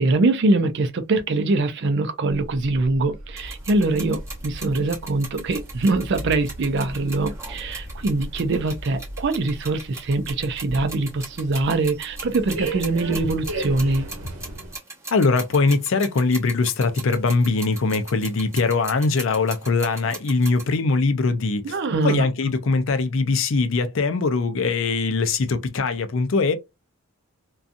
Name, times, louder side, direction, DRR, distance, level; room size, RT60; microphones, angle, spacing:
voice 1, 0.0-14.1 21.6-22.2, right 2 dB, 55° right, 0.4 m, -23 dB
sound 1, 2.3-14.8, right 1 dB, 90° right, 0.8 m, -36 dB
sound 2, 3.4-20.8, right 3 dB, 15° right, 0.7 m, -39 dB
voice 2, 15.1-21.8 22.0-26.5, left 4 dB, 60° left, 0.5 m, -21 dB
2.6 x 2.3 x 2.5 m
head